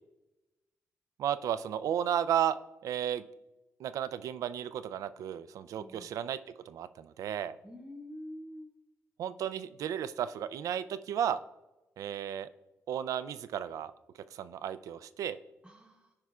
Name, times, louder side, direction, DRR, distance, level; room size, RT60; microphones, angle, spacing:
voice 1, 1.2-2.6 2.8-3.2 3.8-6.4 6.7-7.6 9.2-11.4 12.0-12.5 12.9-13.9 14.3-15.4, right 9 dB, 85° right, 13 dB, 0.3 m, -33 dB
voice 2, 5.7-6.2 7.6-8.7 15.6-16.1, left 1 dB, 15° right, -1 dB, 0.8 m, -47 dB
13.5 x 4.9 x 2.3 m, 1.0 s
cardioid pair, 105°, 6 cm